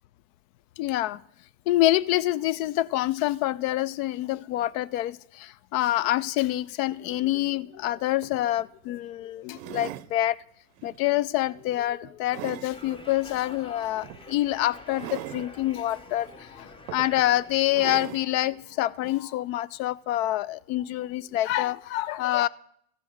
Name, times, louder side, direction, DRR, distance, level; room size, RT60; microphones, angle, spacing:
voice 1, 0.8-1.2 1.7-10.4 10.8-22.5, left 15 dB, 65° left, 0.5 m, -26 dB
sound 1, 7.9-8.0 8.2-8.4 9.5-10.1 10.8-11.0 11.5-12.7 14.0-14.2 14.9-15.5 16.3-16.4 16.9-17.3 17.7-18.3 19.0-19.1, right 16 dB, 60° right, 0.5 m, -39 dB
sound 2, 12.7-18.0, left 2 dB, 10° left, 0.7 m, -47 dB
13.5 x 5.5 x 6.3 m
hypercardioid pair, 85°, 45 cm